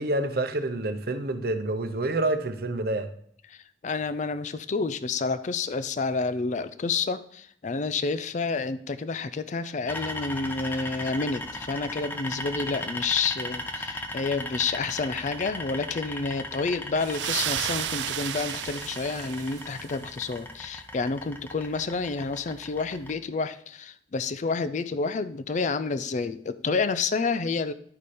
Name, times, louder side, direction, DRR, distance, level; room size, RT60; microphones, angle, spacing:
voice 1, 0.0-3.1, right 2 dB, 60° right, 9 dB, 0.7 m, -28 dB
voice 2, 3.8-27.7, left 4 dB, 45° left, 13 dB, 0.4 m, -29 dB
sound 1, 9.9-23.1, left 1 dB, 10° left, 0.8 m, -37 dB
sound 2, 17.0-20.0, right 11 dB, 85° right, 0.4 m, -32 dB
10.5 x 5.0 x 4.2 m, 0.63 s
head